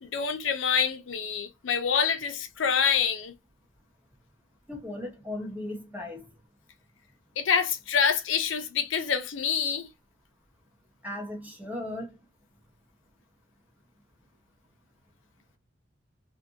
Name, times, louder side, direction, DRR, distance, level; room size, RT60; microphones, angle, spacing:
voice 1, 0.0-3.3 7.4-9.9, left 6 dB, 85° left, 0.6 m, -26 dB
voice 2, 4.7-6.3 11.0-12.2, left 1 dB, 10° right, 1.0 m, -37 dB
2.6 x 2.5 x 2.6 m
head